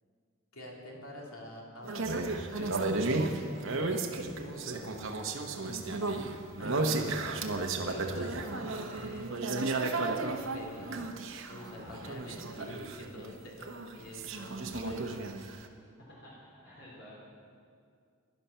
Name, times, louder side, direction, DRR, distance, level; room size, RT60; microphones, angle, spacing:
voice 1, 0.5-4.9 5.6-7.3 7.8-9.4 10.2-11.1 11.5-15.1, left 1 dB, 75° left, -1 dB, 2.7 m, -47 dB
sound 1, 1.8-13.4 13.6-15.6, right 3 dB, 65° right, 1.0 m, -34 dB
voice 2, 4.5-5.7 11.6-12.1 16.1-17.1, left 1 dB, 55° left, -5 dB, 3.5 m, -50 dB
16.0 x 11.5 x 5.7 m, 2.2 s
head